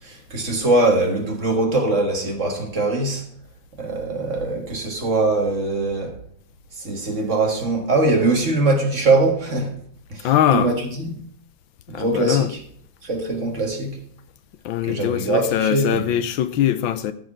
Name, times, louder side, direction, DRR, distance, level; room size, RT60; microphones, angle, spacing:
voice 1, 0.0-3.3 3.8-6.2 6.7-9.8 10.1-11.2 11.9-12.6 13.0-14.0 14.8-16.1, right 2 dB, 40° right, 1.7 m, -22 dB
voice 2, 10.2-10.7 11.9-12.5 14.6-17.1, left 11 dB, 80° left, 1.4 m, -21 dB
13.5 x 4.7 x 5.9 m
omnidirectional pair, 2.2 m